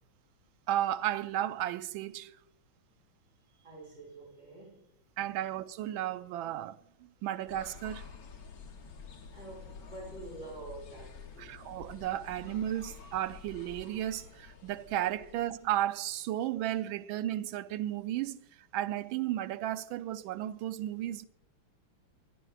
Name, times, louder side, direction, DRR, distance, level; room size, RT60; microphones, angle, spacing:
voice 1, 0.7-2.3 5.2-8.0 11.4-18.4 18.7-21.3, right 12 dB, 75° right, 1.3 m, -34 dB
voice 2, 3.5-4.9 9.0-11.5, right 2 dB, 20° right, 5.3 m, -47 dB
sound 1, 7.5-15.9, left 5 dB, 50° left, 1.4 m, -49 dB
24.5 x 11.5 x 2.4 m
omnidirectional pair, 2.3 m